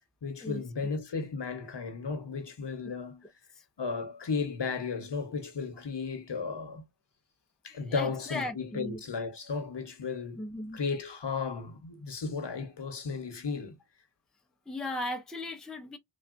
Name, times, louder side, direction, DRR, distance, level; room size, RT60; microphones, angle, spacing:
voice 1, 0.2-3.3 3.8-6.8 7.6-10.4 10.7-13.8, left 5 dB, 60° left, 0.9 m, -34 dB
voice 2, 7.8-9.0 10.4-10.8 14.7-16.0, left 1 dB, ahead, 0.5 m, -37 dB
3.4 x 2.3 x 2.4 m
wide cardioid pair, 55°, 46 cm